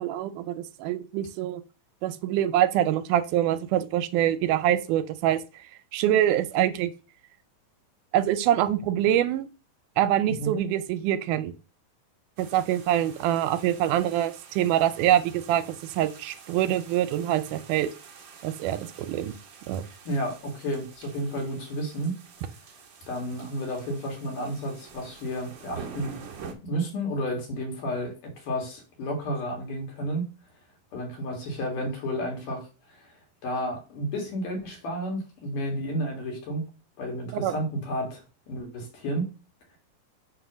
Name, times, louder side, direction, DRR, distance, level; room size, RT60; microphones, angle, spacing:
voice 1, 0.0-1.6 2.0-5.4 5.9-6.9 8.1-9.5 10.0-11.5 12.4-17.9 18.4-19.3 19.7-19.8 37.3-37.5, right 11 dB, 80° right, 11 dB, 2.0 m, -25 dB
sound 1, 12.4-26.5, right 6 dB, 65° right, 1.2 m, -47 dB
voice 2, 20.0-22.2 23.1-26.2 26.6-30.3 30.9-33.0 33.4-36.6 37.0-39.3, equal, 75° left, 1 dB, 3.3 m, -31 dB
7.6 x 2.9 x 6.1 m, 0.34 s
omnidirectional pair, 3.7 m